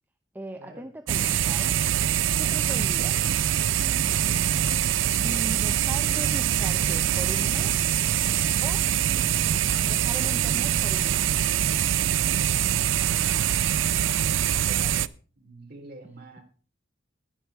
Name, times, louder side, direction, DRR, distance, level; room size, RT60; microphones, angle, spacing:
voice 1, 0.3-1.8 2.4-3.3 5.2-7.9 8.6-8.8 9.9-11.3, right 1 dB, 10° right, 7 dB, 0.6 m, -39 dB
sound 1, 1.1-15.1, right 10 dB, 85° right, 0.4 m, -24 dB
Organ, 3.0-12.6, left 2 dB, 55° left, 0.9 m, -50 dB
voice 2, 14.6-15.0 15.4-16.4, right 2 dB, 50° right, 3 dB, 2.8 m, -45 dB
10.5 x 10.0 x 4.5 m, 0.38 s
head